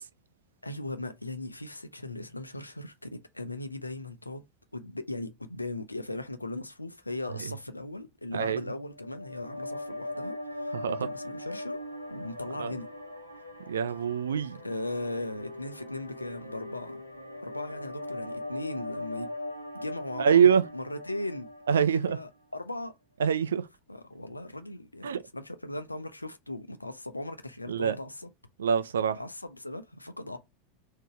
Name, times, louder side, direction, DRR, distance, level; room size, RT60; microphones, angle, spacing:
voice 1, 0.6-4.4 4.7-11.8 12.1-12.9 14.6-17.0 17.4-19.3 19.7-21.5 21.9-22.9 23.9-28.3 29.1-30.4, left 2 dB, 85° left, 0.6 m, -38 dB
sound 1, 8.9-22.2, left 1 dB, 90° right, 0.8 m, -40 dB
voice 2, 10.7-11.1 12.6-12.7 13.7-14.6 20.2-20.6 21.7-22.2 23.2-23.6 25.0-25.2 27.7-27.9 28.6-29.2, right 7 dB, 65° right, 0.4 m, -24 dB
3.8 x 2.7 x 4.8 m
figure-of-eight pair, 85°, 0 cm